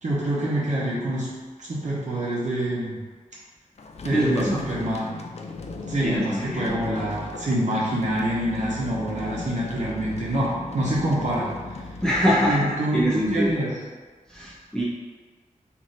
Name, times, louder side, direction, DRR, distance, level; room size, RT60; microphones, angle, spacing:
voice 1, 0.0-1.3 1.6-3.0 4.0-5.1 5.9-11.8 12.5-13.7, right 1 dB, 60° right, -7 dB, 0.7 m, -26 dB
sound 1, 3.8-13.2, left 3 dB, 50° left, 0.4 m, -37 dB
voice 2, 4.1-4.6 6.0-6.8 12.0-12.7 12.9-13.5 14.3-14.8, equal, 5° left, -8 dB, 0.7 m, -23 dB
3.2 x 2.6 x 3.9 m, 1.4 s
wide cardioid pair, 95°, 14 cm